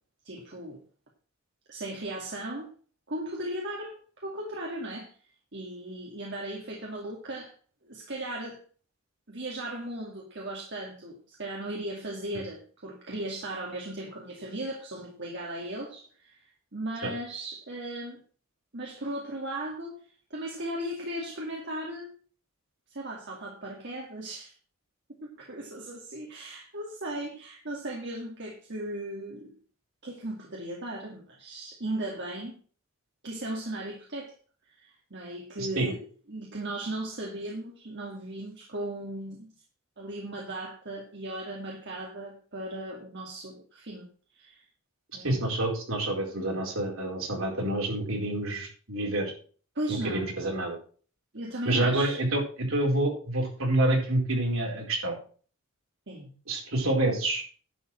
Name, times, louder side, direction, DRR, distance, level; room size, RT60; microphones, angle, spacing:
voice 1, 0.2-0.8 1.7-2.7 3.1-5.1 5.5-7.5 7.8-8.6 9.3-16.4 16.7-18.2 18.7-22.1 22.9-24.5 25.2-29.5 30.0-32.6 33.2-34.3 34.7-36.0 36.3-39.5 40.0-44.1 44.3-44.6 45.1-45.4 49.8-50.4 51.3-52.2 56.1-56.3, right 1 dB, 55° right, -1 dB, 2.2 m, -37 dB
voice 2, 35.6-35.9 45.2-49.3 49.9-50.8 51.7-55.1 56.5-57.4, right 1 dB, 70° right, 0 dB, 4.5 m, -28 dB
11.0 x 5.5 x 7.5 m, 0.42 s
head